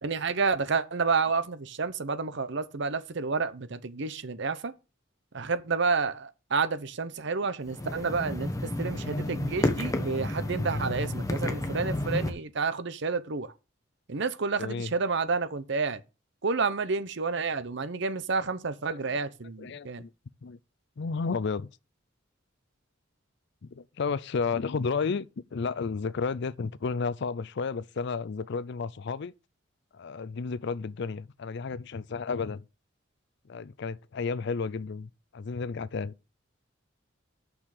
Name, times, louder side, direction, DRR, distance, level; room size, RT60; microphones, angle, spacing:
voice 1, 0.0-4.7 5.3-13.5 14.1-16.0 16.4-20.0, right 4 dB, 65° right, 0.8 m, -30 dB
sound 1, 7.7-12.3, left 1 dB, 15° left, 1.0 m, -31 dB
voice 2, 14.6-14.9 18.9-19.2 19.6-20.1 20.4-20.6 21.0-21.7 23.6-29.3 29.9-32.6 33.4-36.1, left 5 dB, 60° left, 0.5 m, -32 dB
6.4 x 6.1 x 6.5 m
head